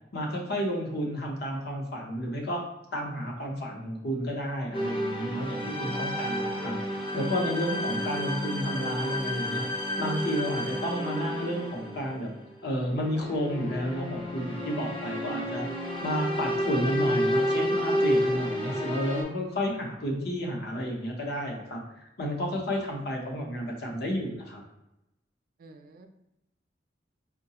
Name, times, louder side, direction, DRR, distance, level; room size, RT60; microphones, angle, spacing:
voice 1, 0.1-2.6 2.9-6.8 7.1-9.6 10.0-12.3 12.6-15.7 16.0-24.6, equal, 60° left, 0 dB, 0.8 m, -31 dB
sound 1, 4.7-19.2, equal, 30° left, 0.6 m, -30 dB
voice 2, 7.7-8.1 25.6-26.1, right 3 dB, 50° right, 6 dB, 0.3 m, -45 dB
4.6 x 2.2 x 2.8 m, 0.89 s
head